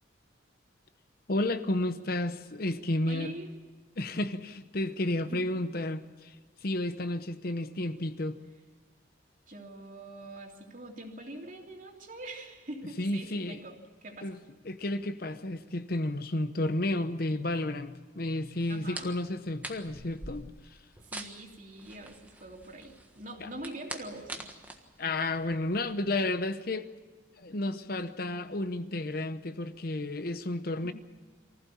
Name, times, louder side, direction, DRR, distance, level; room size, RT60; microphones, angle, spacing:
voice 1, 1.3-3.3 4.0-6.4 6.6-8.4 13.0-13.6 14.2-14.4 14.6-20.5 23.4-23.5 25.0-26.9 27.4-30.9, left 2 dB, 50° left, 0.9 m, -32 dB
voice 2, 3.1-3.5 5.3-5.5 9.5-14.4 18.7-19.1 21.0-24.4 30.8-30.9, right 1 dB, 40° right, 3.1 m, -44 dB
sound 1, 18.6-25.9, right 1 dB, 10° right, 1.4 m, -45 dB
24.5 x 15.5 x 8.5 m
head